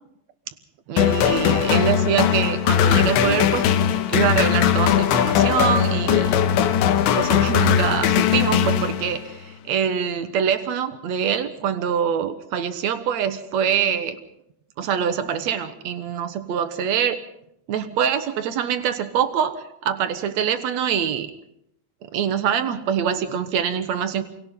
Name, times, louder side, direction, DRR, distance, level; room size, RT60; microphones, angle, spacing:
voice 1, 0.9-3.7 4.1-6.4 7.1-14.2 14.8-17.2 17.7-21.3 22.0-24.2, right 8 dB, 70° right, 10 dB, 1.7 m, -24 dB
sound 1, 1.0-9.3, left 9 dB, 80° left, 3.6 m, -19 dB
28.5 x 24.0 x 3.9 m, 0.74 s
omnidirectional pair, 5.1 m